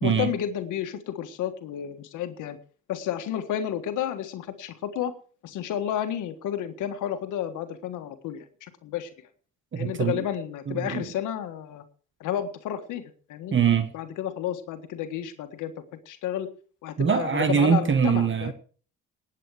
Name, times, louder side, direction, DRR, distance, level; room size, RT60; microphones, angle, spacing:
voice 1, 0.0-2.6 2.9-5.1 5.4-9.1 9.7-11.8 12.2-13.6 13.9-16.5 16.8-18.5, left 10 dB, 90° left, 1.6 m, -31 dB
voice 2, 9.7-10.3 10.7-11.0 13.5-13.9 17.0-18.5, right 7 dB, 40° right, 1.5 m, -23 dB
18.5 x 8.4 x 4.9 m
cardioid pair, 90°, 30 cm